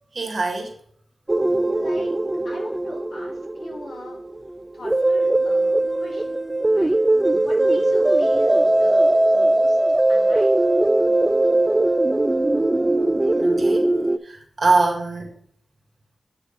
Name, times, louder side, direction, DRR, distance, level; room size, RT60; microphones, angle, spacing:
voice 1, 0.1-0.7 13.4-13.8 14.2-15.3, right 3 dB, 60° right, 2 dB, 1.7 m, -23 dB
sound 1, 1.3-14.2, right 2 dB, 25° right, 0.3 m, -20 dB
voice 2, 1.7-2.1 2.4-4.2 4.7-6.4 6.6-7.0 7.3-9.8 10.1-10.5, left 1 dB, 70° left, -3 dB, 3.2 m, -39 dB
9.0 x 3.3 x 5.0 m, 0.62 s
cardioid pair, 65°, 0 cm